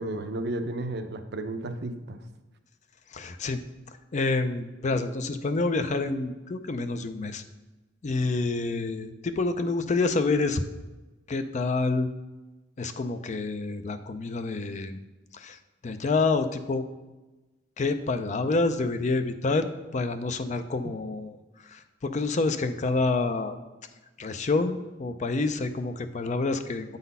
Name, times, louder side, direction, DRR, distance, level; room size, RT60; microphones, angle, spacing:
voice 1, 0.0-2.2, right 2 dB, 60° right, 7 dB, 0.6 m, -33 dB
voice 2, 3.1-3.6 4.1-7.4 8.0-10.6 11.3-12.1 12.8-15.0 15.3-16.8 17.8-21.4 21.6-23.6 24.2-27.0, left 3 dB, 40° left, 9 dB, 0.5 m, -28 dB
8.3 x 4.0 x 5.4 m, 1.1 s
head